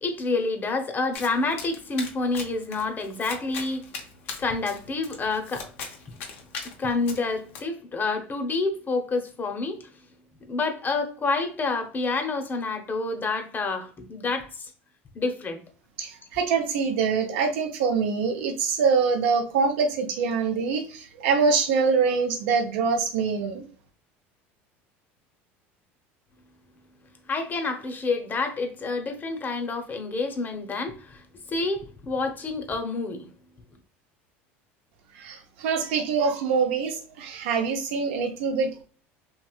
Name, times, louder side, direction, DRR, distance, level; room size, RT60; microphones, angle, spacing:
voice 1, 0.0-3.9 4.4-5.7 6.8-9.9 10.5-14.7 15.1-15.6 27.3-31.2 31.5-33.3, left 3 dB, 30° left, 0.7 m, -28 dB
Domestic sounds home sounds, 1.1-7.6, left 5 dB, 80° left, 0.7 m, -40 dB
voice 2, 16.0-23.7 35.1-38.8, right 5 dB, 75° right, 0.7 m, -24 dB
3.0 x 2.8 x 2.3 m
hypercardioid pair, 85°, 7 cm